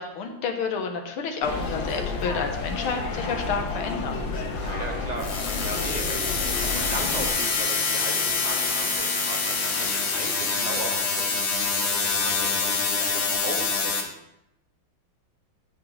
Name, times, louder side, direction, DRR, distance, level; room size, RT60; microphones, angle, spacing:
voice 1, 0.0-4.2, left 5 dB, 90° left, 4 dB, 2.0 m, -30 dB
sound 1, 1.4-7.3, left 4 dB, 65° left, 1.9 m, -31 dB
Wind instrument woodwind instrument, 2.6-8.0, equal, 90° right, 3.5 m, -45 dB
voice 2, 4.3-14.1, right 2 dB, 30° right, 1 dB, 0.9 m, -37 dB
sound 2, 5.2-14.0, left 4 dB, 40° left, 1.0 m, -26 dB
14.0 x 6.1 x 3.3 m, 0.85 s
omnidirectional pair, 2.3 m